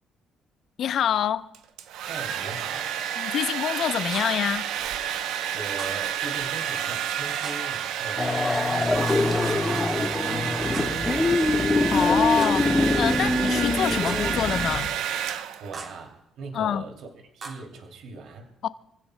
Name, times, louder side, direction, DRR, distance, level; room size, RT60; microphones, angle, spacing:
voice 1, 0.8-1.5 3.2-4.7 11.9-15.0 16.5-16.8 18.6-18.7, left 9 dB, 60° left, 0.6 m, -26 dB
Domestic sounds home sounds, 1.5-15.8, right 9 dB, 85° right, 0.7 m, -30 dB
voice 2, 2.1-3.0 5.5-11.4 13.1-13.5 15.6-18.5, right 3 dB, 65° right, 2.7 m, -40 dB
sound 1, 4.1-4.5 5.8-6.1 7.4-7.8 9.1-9.5 10.7-11.1 12.4-12.8 14.1-14.4 15.7-16.1 17.4-17.6, right 4 dB, 40° right, 1.6 m, -40 dB
sound 2, 8.2-14.9, left 2 dB, 15° left, 1.3 m, -24 dB
27.0 x 16.0 x 2.2 m
cardioid pair, 110°, 0 cm